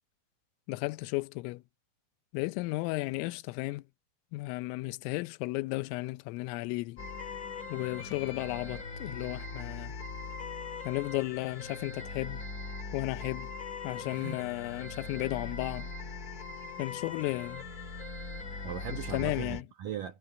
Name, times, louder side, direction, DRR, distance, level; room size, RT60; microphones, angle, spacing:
voice 1, 0.7-1.6 2.3-3.8 4.3-7.0 7.7-9.9 10.9-12.4 12.9-13.5 13.8-15.9 16.8-17.7 19.1-19.6, left 22 dB, 85° left, 3.2 m, -34 dB
sound 1, 7.0-19.6, left 4 dB, 40° left, 1.2 m, -41 dB
voice 2, 14.0-14.5 18.6-20.2, right 8 dB, 75° right, 2.0 m, -39 dB
omnidirectional pair, 5.8 m